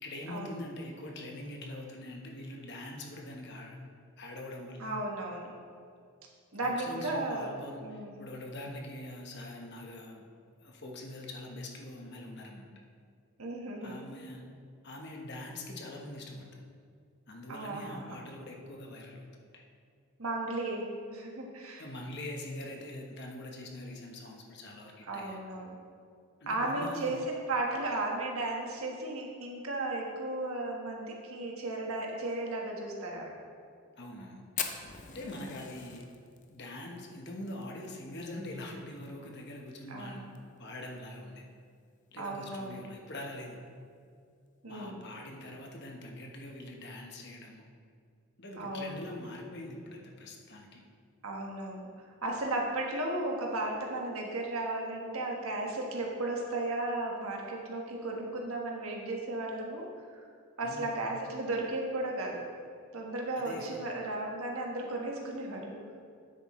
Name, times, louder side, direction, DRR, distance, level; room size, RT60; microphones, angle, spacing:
voice 1, 0.0-3.9 4.2-5.0 6.6-10.2 10.6-12.7 13.8-14.4 14.8-16.6 17.3-19.3 19.5-19.6 21.8-25.4 26.4-27.2 34.0-34.4 35.1-36.1 36.5-40.2 40.6-41.4 42.1-43.6 44.6-47.6 48.4-50.8 60.6-60.9 63.4-63.7, left 1 dB, 50° left, 1 dB, 1.1 m, -43 dB
voice 2, 4.8-5.5 6.5-7.5 7.8-8.2 13.4-14.0 17.5-18.2 20.2-21.8 25.1-25.7 26.5-33.3 35.2-35.5 39.9-40.4 42.2-42.8 44.6-45.0 48.6-49.0 51.2-51.9 52.2-59.9 60.1-60.3 60.6-62.4 62.9-65.8, right 2 dB, 75° right, 0 dB, 1.4 m, -35 dB
Fire, 34.6-39.1 39.3-39.4 39.7-39.8 40.2-40.6 41.1-41.2 42.2-42.4, left 7 dB, 35° left, 0.5 m, -40 dB
9.6 x 7.9 x 3.2 m, 2.2 s
head